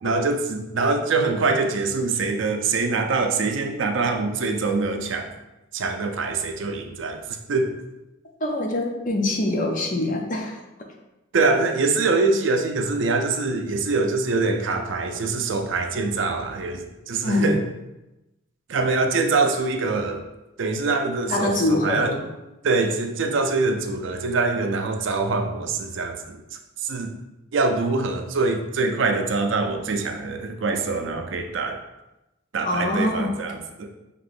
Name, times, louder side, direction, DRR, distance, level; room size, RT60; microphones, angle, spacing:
voice 1, 0.0-5.3 5.7-7.2 7.5-7.8 11.3-17.6 18.7-20.3 20.6-22.1 22.6-26.4 26.8-27.2 27.5-31.8 32.5-33.9, right 3 dB, 65° right, 5 dB, 0.4 m, -24 dB
voice 2, 8.4-10.6 17.2-17.5 21.3-22.3 32.6-33.4, left 2 dB, 40° left, 1 dB, 0.6 m, -24 dB
5.9 x 3.0 x 2.5 m, 0.95 s
head